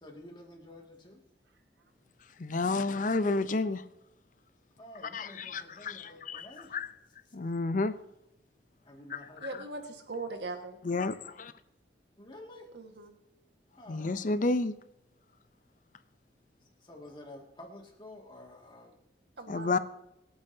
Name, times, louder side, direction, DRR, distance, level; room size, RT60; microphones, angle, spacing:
voice 1, 0.0-1.2 4.8-6.7 8.9-9.6 12.2-12.7 13.8-14.1 16.8-19.0 19.5-19.8, left 1 dB, 25° left, 1 dB, 2.1 m, -50 dB
voice 2, 2.4-3.8 5.0-6.9 7.3-7.9 9.1-9.2 10.8-11.5 13.9-14.7 19.5-19.8, left 3 dB, 45° left, 13 dB, 0.6 m, -30 dB
voice 3, 9.4-10.8 12.7-13.1 19.4-19.8, right 3 dB, 80° right, 5 dB, 1.6 m, -40 dB
25.5 x 8.8 x 2.8 m, 0.86 s
head